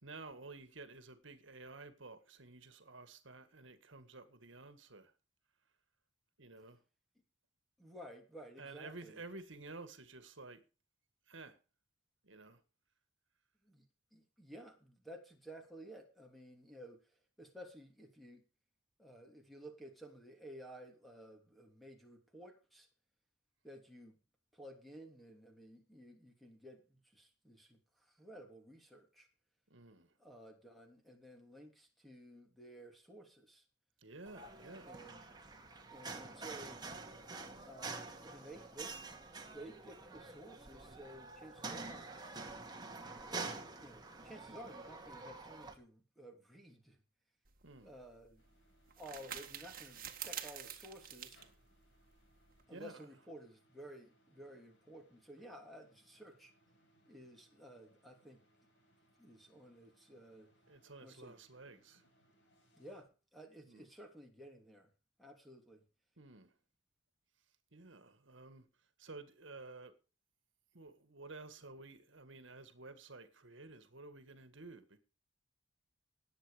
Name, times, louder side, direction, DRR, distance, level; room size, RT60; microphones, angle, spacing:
voice 1, 0.0-5.1 6.4-6.8 8.6-10.6 11.3-11.6 12.2-12.6 29.7-30.2 34.0-35.0 47.6-48.0 52.7-53.1 60.1-60.2 60.7-62.1 63.7-63.9 66.2-66.6 67.7-69.9 70.7-75.0, right 3 dB, 70° right, 1.8 m, -52 dB
voice 2, 7.8-9.2 13.6-13.9 14.1-18.4 19.0-22.9 23.6-24.2 24.5-29.3 30.2-33.6 34.8-35.2 35.9-36.8 37.7-39.0 39.5-42.1 43.7-47.0 47.8-48.4 49.0-51.4 52.7-56.5 57.1-58.4 59.2-60.5 61.0-61.3 62.7-64.9 65.2-65.8, right 1 dB, ahead, 3.0 m, -54 dB
sound 1, 34.2-45.7, right 3 dB, 20° right, 2.2 m, -47 dB
sound 2, 47.4-52.6, right 10 dB, 45° right, 1.8 m, -48 dB
sound 3, 48.4-63.0, right 1 dB, 65° left, 5.5 m, -72 dB
19.0 x 8.2 x 5.1 m
head